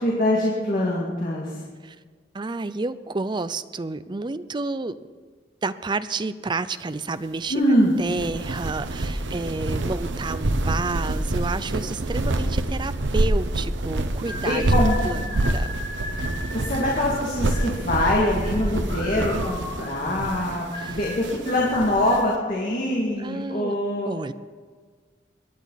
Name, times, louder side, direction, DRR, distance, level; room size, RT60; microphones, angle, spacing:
voice 1, 0.0-1.6 7.5-8.0 14.4-15.0 16.5-24.1, left 1 dB, 45° left, -4 dB, 2.3 m, -24 dB
voice 2, 2.3-5.0 5.6-7.6 8.0-15.2 15.5-15.7 16.2-16.3 20.7-21.0 23.2-23.7 24.1-24.3, right 3 dB, 25° right, 13 dB, 0.4 m, -30 dB
sound 1, 8.0-22.2, right 1 dB, 85° right, 0.9 m, -27 dB
sound 2, 14.2-22.3, left 1 dB, 25° left, 4.4 m, -37 dB
22.0 x 10.5 x 4.1 m, 1.6 s
head